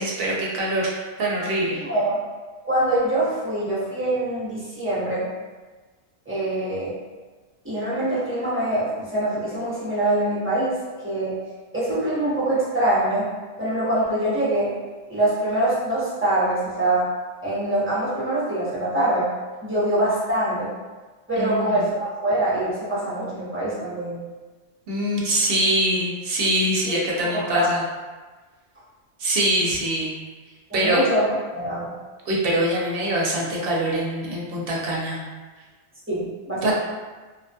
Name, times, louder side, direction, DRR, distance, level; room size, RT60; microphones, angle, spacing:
voice 1, 0.0-1.8 21.4-21.9 24.9-27.8 29.2-30.1 30.7-31.0 32.3-35.2 36.6-36.7, right 1 dB, 60° right, -4 dB, 0.7 m, -24 dB
voice 2, 1.8-2.2 2.6-5.3 6.3-6.9 7.6-11.4 11.7-13.3 13.6-14.8 15.1-17.1 17.4-19.3 19.6-20.7 21.3-24.2 27.1-27.7 30.7-31.9 36.1-36.7, right 1 dB, 15° right, -10 dB, 0.6 m, -24 dB
2.2 x 2.2 x 2.6 m, 1.3 s
omnidirectional pair, 1.2 m